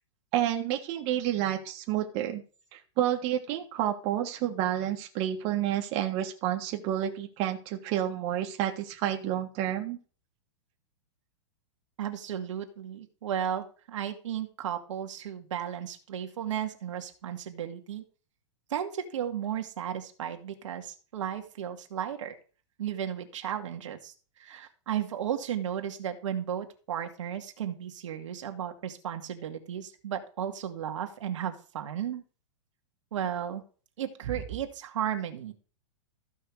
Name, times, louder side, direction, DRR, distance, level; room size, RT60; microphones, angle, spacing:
voice 1, 0.3-2.4 2.7-10.0, right 11 dB, 40° right, 3 dB, 1.6 m, -30 dB
voice 2, 12.0-18.0 18.7-22.3 22.8-32.2 33.1-33.6 34.0-35.5, right 9 dB, 80° right, 5 dB, 2.0 m, -34 dB
14.0 x 5.6 x 4.9 m, 0.38 s
hypercardioid pair, 145°, 16 cm